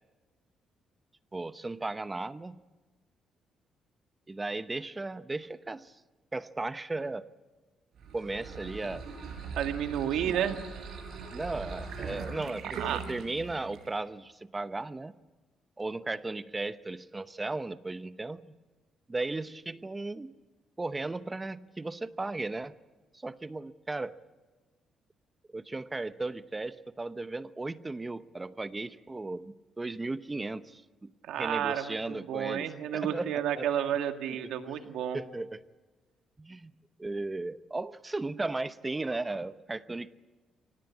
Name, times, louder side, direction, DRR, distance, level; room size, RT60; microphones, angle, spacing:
voice 1, 1.3-2.6 4.3-6.0 6.3-7.3 8.1-9.1 10.2-10.4 11.3-12.8 13.1-15.1 15.8-18.6 19.1-20.3 20.8-22.7 23.1-24.2 25.5-31.1 31.4-33.7 34.4-34.5 35.1-35.6 36.4-36.7 37.0-40.1, right 2 dB, 20° right, 13 dB, 0.9 m, -36 dB
sound 1, 7.9-14.0, right 5 dB, 65° right, 6.0 m, -41 dB
voice 2, 9.5-10.6 12.7-13.0 31.2-35.2, right 10 dB, 85° right, 6 dB, 1.8 m, -31 dB
24.5 x 18.5 x 8.6 m, 1.2 s
cardioid pair, 90°, 0 cm